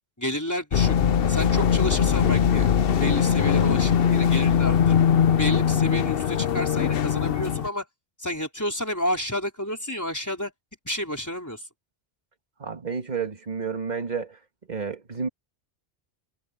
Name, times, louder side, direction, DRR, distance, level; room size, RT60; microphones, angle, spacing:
voice 1, 0.2-0.9 1.3-2.7 3.0-5.0 5.4-7.8 8.2-10.5 10.8-11.7, left 1 dB, 15° left, 4.3 m, -30 dB
sound 1, 0.7-7.7, left 8 dB, 60° left, 0.9 m, -21 dB
voice 2, 12.6-14.4 14.7-15.3, right 5 dB, 40° right, 1.8 m, -30 dB
omnidirectional pair, 1.1 m